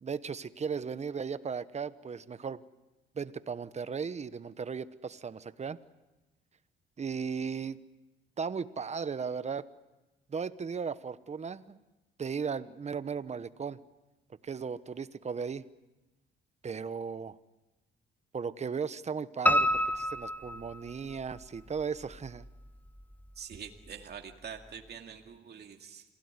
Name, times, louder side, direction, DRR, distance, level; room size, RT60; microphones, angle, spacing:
voice 1, 0.0-2.6 3.1-5.8 7.0-7.8 8.4-9.7 10.3-11.8 12.2-13.8 14.4-15.6 16.6-17.4 18.3-22.4, right 6 dB, 35° right, 14 dB, 1.1 m, -36 dB
Piano, 19.5-21.4 21.8-22.7 23.0-23.1 23.5-23.6 23.9-24.0, equal, 10° left, 1.4 m, -29 dB
voice 2, 23.4-26.0, right 7 dB, 55° right, 3 dB, 2.2 m, -45 dB
27.0 x 17.5 x 9.7 m, 1.1 s
cardioid pair, 90°, 20 cm